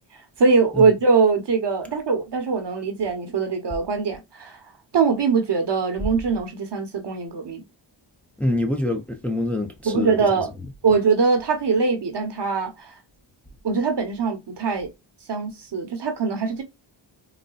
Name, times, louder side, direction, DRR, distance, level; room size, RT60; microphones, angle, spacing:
voice 1, 0.4-4.6 4.9-7.6 9.8-10.5 10.8-12.9 13.6-14.9 15.3-16.6, right 4 dB, 60° right, 1.0 m, -22 dB
voice 2, 8.4-10.4, left 1 dB, 5° left, 0.6 m, -26 dB
4.0 x 2.2 x 2.3 m
cardioid pair, 65°, 47 cm